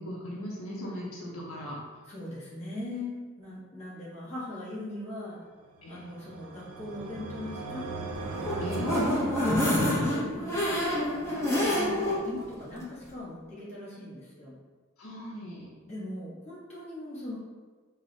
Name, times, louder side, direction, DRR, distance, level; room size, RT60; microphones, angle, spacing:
voice 1, 0.0-1.8 5.8-6.2 8.6-9.1 15.0-15.7, equal, 80° left, -4 dB, 0.7 m, -38 dB
voice 2, 2.1-5.4 5.9-7.9 8.5-14.5 15.8-17.4, left 1 dB, 30° left, -8 dB, 1.0 m, -40 dB
sound 1, 5.8-10.1, right 3 dB, 75° right, 0.4 m, -39 dB
sound 2, 8.2-12.2 12.6-12.7 13.0-13.1, left 1 dB, 15° left, 0.6 m, -27 dB
4.6 x 2.1 x 2.7 m, 1.4 s
head